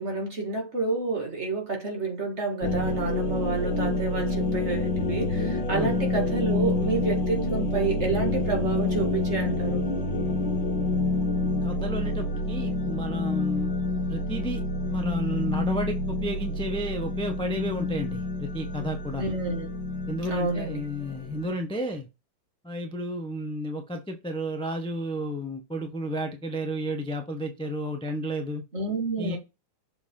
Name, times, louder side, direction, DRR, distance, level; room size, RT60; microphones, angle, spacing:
voice 1, 0.0-9.8 19.2-19.7 20.2-20.8 28.7-29.4, right 3 dB, 35° right, 2.2 m, -29 dB
sound 1, 2.6-21.5, left 2 dB, 90° left, 1.8 m, -28 dB
voice 2, 11.6-13.7 14.1-14.6 14.9-19.3 20.1-22.1 22.6-28.6 29.2-29.4, equal, 5° left, 0.5 m, -32 dB
6.9 x 4.0 x 3.8 m
omnidirectional pair, 2.0 m